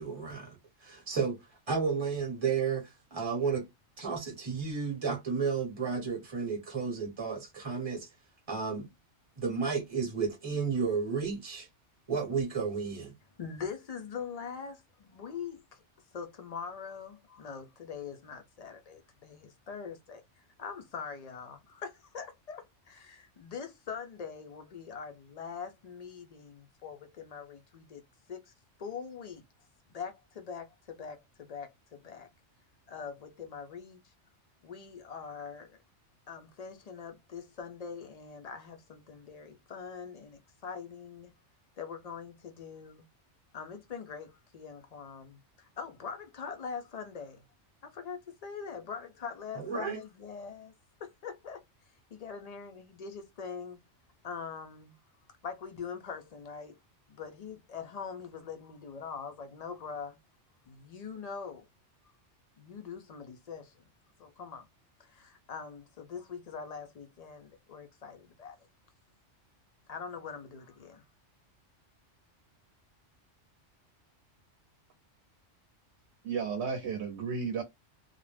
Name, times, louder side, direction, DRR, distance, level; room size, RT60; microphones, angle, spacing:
voice 1, 0.0-3.7 4.0-8.1 8.5-8.9 9.4-11.7 12.1-13.1 49.5-50.0, right 5 dB, 25° right, 0.8 m, -32 dB
voice 2, 13.4-15.8 16.1-28.0 28.3-28.5 28.8-29.4 29.9-32.3 32.9-34.1 34.6-35.8 36.3-41.3 41.8-43.0 43.5-47.4 47.8-50.7 51.0-51.6 52.1-53.8 54.2-54.9 55.4-56.8 57.1-60.2 60.7-61.7 62.0-62.2 62.6-63.8 64.2-64.7 65.0-68.6 69.9-71.0, left 6 dB, 65° left, 0.4 m, -43 dB
voice 3, 76.2-77.6, right 5 dB, 70° right, 0.9 m, -33 dB
2.4 x 2.0 x 3.1 m
omnidirectional pair, 1.2 m